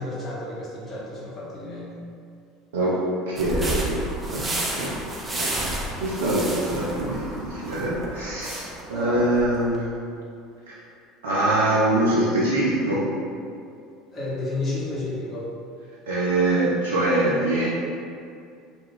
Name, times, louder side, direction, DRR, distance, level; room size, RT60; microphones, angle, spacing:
voice 1, 0.0-2.0 8.9-9.3 14.1-15.4, left 2 dB, 35° left, -7 dB, 1.0 m, -31 dB
voice 2, 3.3-5.0 5.3-5.5 6.0-9.8 10.7-10.8 11.2-13.1 16.1-17.7, right 1 dB, 80° right, -6 dB, 0.4 m, -24 dB
sound 1, 3.4-9.8, right 1 dB, 25° right, 0.6 m, -31 dB
2.3 x 2.3 x 3.4 m, 2.4 s
hypercardioid pair, 70°, 0 cm